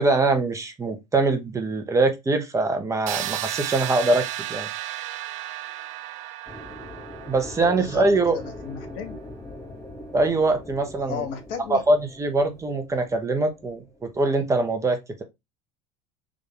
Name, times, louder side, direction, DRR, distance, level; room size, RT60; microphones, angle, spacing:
voice 1, 0.0-4.2 4.5-4.7 7.3-8.4 10.1-11.2 11.7-15.2, right 2 dB, 20° right, 0.9 m, -23 dB
sound 1, 3.1-8.9, right 14 dB, 50° right, 0.4 m, -34 dB
sound 2, 6.5-14.6, left 1 dB, 15° left, 0.9 m, -42 dB
voice 2, 7.6-9.2 11.1-11.8, left 7 dB, 65° left, 1.2 m, -34 dB
3.6 x 2.6 x 3.8 m
hypercardioid pair, 80°, 15 cm